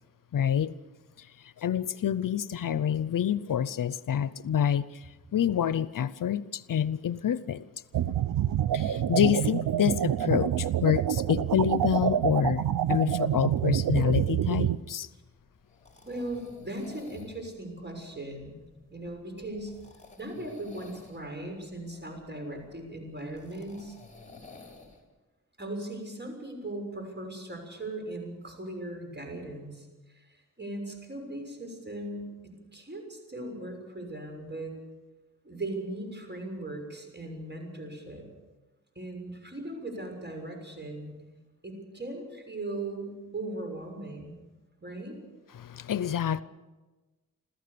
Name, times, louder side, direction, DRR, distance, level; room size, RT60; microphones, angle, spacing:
voice 1, 0.3-0.7 1.2-1.3 1.6-5.0 5.3-7.6 8.7-12.6 12.9-15.1 45.5-46.4, left 9 dB, 70° left, 0.7 m, -27 dB
sound 1, 7.9-14.8, right 10 dB, 90° right, 0.7 m, -27 dB
sound 2, 15.3-25.0, left 3 dB, 20° left, 6.0 m, -53 dB
voice 2, 16.0-18.6 18.9-19.7 20.2-24.0 25.6-29.9 30.1-30.2 30.6-34.8 35.4-38.2 38.9-41.2 41.6-44.4 44.8-45.2, right 1 dB, 30° right, 6.5 m, -38 dB
26.5 x 14.5 x 6.9 m
cardioid pair, 55°, 34 cm